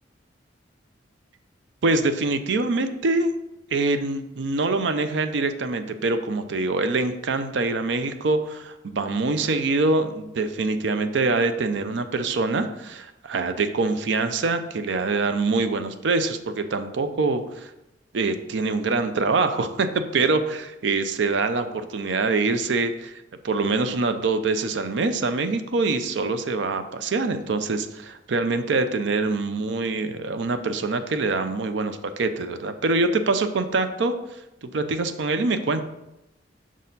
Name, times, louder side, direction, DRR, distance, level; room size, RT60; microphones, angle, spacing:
voice 1, 1.8-3.3 3.7-17.7 18.1-34.1 34.6-35.8, right 3 dB, 65° right, 9 dB, 0.5 m, -24 dB
6.1 x 4.3 x 4.0 m, 0.91 s
head